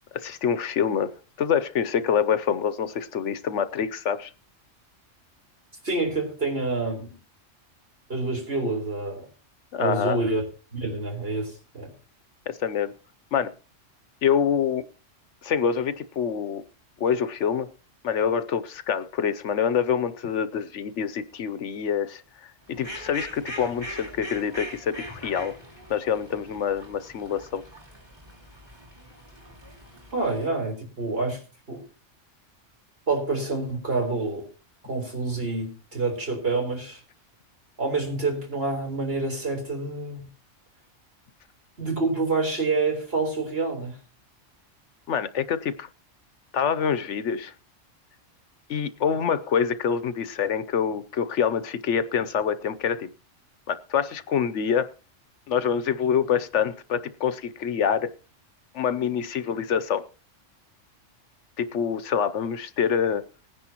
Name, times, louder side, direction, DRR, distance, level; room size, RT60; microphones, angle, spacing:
voice 1, 0.1-1.1 1.4-4.3 9.7-10.2 12.5-12.9 13.3-13.5 14.2-14.9 15.4-16.6 17.0-17.7 18.0-25.6 25.9-27.6 45.1-45.9 46.5-47.5 48.7-53.1 53.7-54.9 55.5-58.1 58.7-60.0 61.6-63.2, left 7 dB, 70° left, 1.0 m, -26 dB
voice 2, 5.8-7.1 8.1-9.3 9.8-10.4 10.7-11.9 30.1-31.4 31.7-31.8 33.1-34.5 34.9-37.0 37.8-40.2 41.8-44.0, right 3 dB, 50° right, 4.2 m, -27 dB
Fowl, 22.7-30.5, equal, 20° right, 2.9 m, -42 dB
20.0 x 10.0 x 2.9 m
omnidirectional pair, 1.3 m